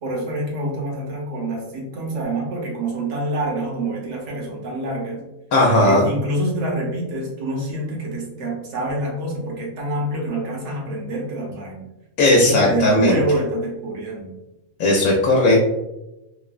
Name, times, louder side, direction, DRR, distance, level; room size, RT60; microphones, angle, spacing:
voice 1, 0.0-5.2 5.8-11.8 12.2-14.4, right 1 dB, 65° right, -1 dB, 1.0 m, -26 dB
voice 2, 5.5-6.1 12.2-13.2 14.8-15.7, left 1 dB, 85° left, -2 dB, 1.0 m, -16 dB
3.1 x 2.0 x 2.4 m, 0.93 s
omnidirectional pair, 1.4 m